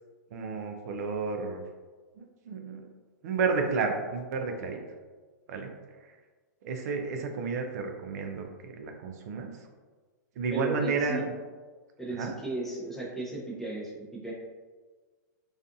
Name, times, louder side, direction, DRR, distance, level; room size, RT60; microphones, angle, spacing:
voice 1, 0.3-1.6 2.2-2.8 3.2-4.8 5.5-5.7 6.6-9.5 10.4-11.2 12.2-12.3, right 4 dB, 55° right, 4 dB, 0.4 m, -31 dB
voice 2, 10.5-11.2 12.0-14.3, right 2 dB, 5° left, -5 dB, 0.5 m, -35 dB
2.5 x 2.3 x 2.5 m, 1.4 s
hypercardioid pair, 140°, 10 cm